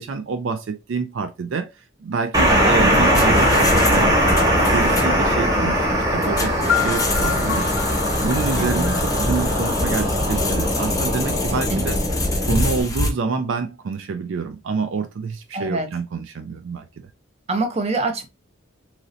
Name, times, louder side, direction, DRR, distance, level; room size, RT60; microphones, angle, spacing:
voice 1, 0.0-1.7 2.0-7.7 8.2-8.9 9.2-12.0 12.4-16.9, right 5 dB, 75° right, 0.4 m, -27 dB
sound 1, 2.3-12.8, equal, 20° right, 1.1 m, -20 dB
sound 2, 2.8-13.1, left 2 dB, 20° left, 0.6 m, -27 dB
sound 3, 6.7-10.5, left 9 dB, 70° left, 0.6 m, -29 dB
voice 2, 8.6-9.0 11.5-11.8 15.5-15.9 17.5-18.3, right 2 dB, 35° right, 0.6 m, -26 dB
3.1 x 2.6 x 2.5 m
head